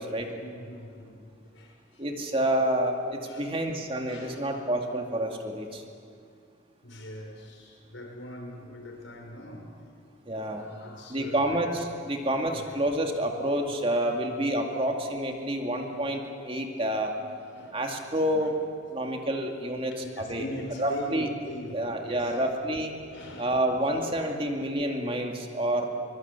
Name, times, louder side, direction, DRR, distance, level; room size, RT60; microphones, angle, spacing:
voice 1, 0.0-2.1 3.2-3.6 4.1-4.4 6.8-9.7 10.6-11.6 12.5-12.7 17.2-18.0 18.3-18.5 18.9-19.3 19.9-22.4 23.1-23.6, left 1 dB, 80° left, 2 dB, 5.2 m, -42 dB
voice 2, 2.0-5.8 10.3-10.6 11.1-17.1 17.7-18.6 18.9-19.9 20.3-20.5 20.8-21.3 21.7-22.9 23.4-25.9, right 1 dB, 30° right, 3 dB, 2.3 m, -28 dB
23.5 x 22.5 x 8.3 m, 2.3 s
head